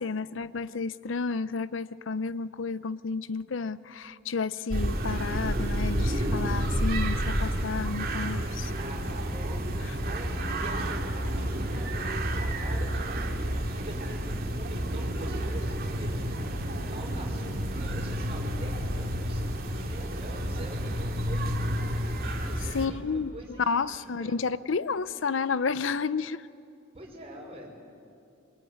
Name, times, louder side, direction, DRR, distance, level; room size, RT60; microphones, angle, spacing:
voice 1, 0.0-8.7 22.7-23.3 23.7-26.5, left 4 dB, 75° left, 16 dB, 0.6 m, -31 dB
sound 1, 4.7-22.9, equal, 50° right, 2.4 m, -30 dB
voice 2, 8.8-24.4 26.9-27.8, right 1 dB, 30° right, 0 dB, 5.6 m, -45 dB
25.0 x 24.5 x 9.4 m, 2.6 s
head